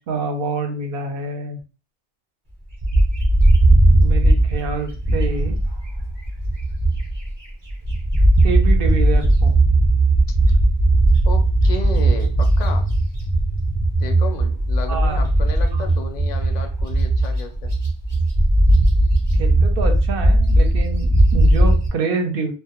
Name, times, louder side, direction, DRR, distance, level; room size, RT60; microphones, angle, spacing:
voice 1, 0.0-1.6 3.9-5.6 8.4-9.5 14.9-15.3 15.7-15.9 19.4-22.5, right 4 dB, 65° right, 4 dB, 0.7 m, -26 dB
Bird, 2.8-7.3 7.7-21.9, right 1 dB, 30° right, 0.6 m, -17 dB
voice 2, 11.3-12.9 14.0-17.7, left 3 dB, 55° left, 5 dB, 0.5 m, -33 dB
2.1 x 2.1 x 2.8 m, 0.34 s
omnidirectional pair, 1.1 m